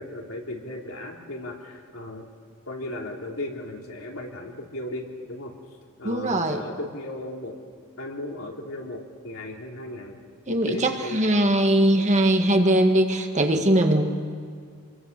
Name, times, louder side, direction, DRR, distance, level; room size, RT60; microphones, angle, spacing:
voice 1, 0.0-2.2 2.7-5.5 6.0-7.6 8.0-10.2 10.5-11.2, left 1 dB, 65° left, 0 dB, 3.2 m, -36 dB
voice 2, 6.0-6.6 10.5-14.1, right 1 dB, 30° right, 4 dB, 1.8 m, -21 dB
27.5 x 22.5 x 6.8 m, 2.1 s
head